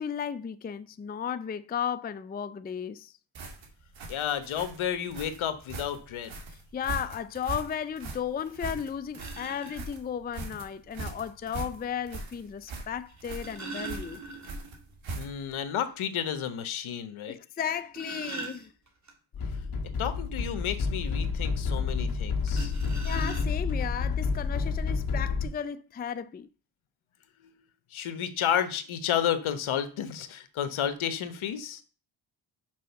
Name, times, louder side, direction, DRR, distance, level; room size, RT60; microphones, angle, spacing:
voice 1, 0.0-3.1 6.7-14.2 17.3-18.7 23.0-26.5, left 8 dB, 20° left, 0.4 m, -34 dB
sound 1, 3.3-15.6, right 3 dB, 65° right, 2.4 m, -40 dB
voice 2, 4.1-6.4 15.2-17.4 20.0-22.7 27.9-31.8, left 9 dB, 75° left, 1.2 m, -31 dB
sound 2, 9.1-9.8 11.2-11.3 13.1-14.8 15.2-15.3 15.7-15.8 16.3-16.4 17.6-19.1 22.5-23.8 24.7-24.8 25.2-25.4, right 3 dB, 35° right, 2.4 m, -41 dB
sound 3, 19.3-25.5, left 4 dB, 45° left, 1.7 m, -29 dB
6.2 x 5.2 x 5.8 m
cardioid pair, 85°, 50 cm